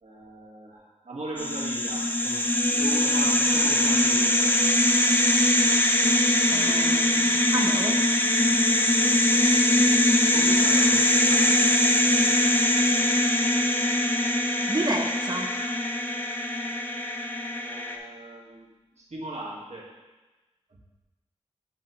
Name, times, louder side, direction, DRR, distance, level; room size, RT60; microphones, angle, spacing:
voice 1, 0.0-4.6 10.3-11.6 17.6-19.9 20.7-20.8, right 2 dB, 80° right, -5 dB, 1.6 m, -38 dB
sound 1, 1.4-18.0, left 1 dB, 15° left, 0.6 m, -22 dB
voice 2, 6.5-8.0 14.7-15.5, right 2 dB, 35° right, 2 dB, 0.9 m, -30 dB
8.2 x 5.6 x 3.0 m, 1.2 s
wide cardioid pair, 65°, 11 cm